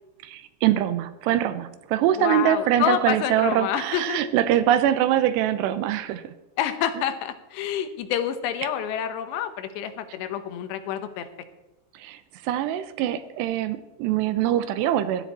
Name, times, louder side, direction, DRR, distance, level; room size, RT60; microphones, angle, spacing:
voice 1, 0.2-6.2 12.0-15.2, right 11 dB, 90° right, 12 dB, 2.9 m, -23 dB
voice 2, 2.2-4.2 6.6-11.3, left 10 dB, 85° left, 9 dB, 3.2 m, -28 dB
15.5 x 13.5 x 4.2 m, 0.99 s
omnidirectional pair, 4.9 m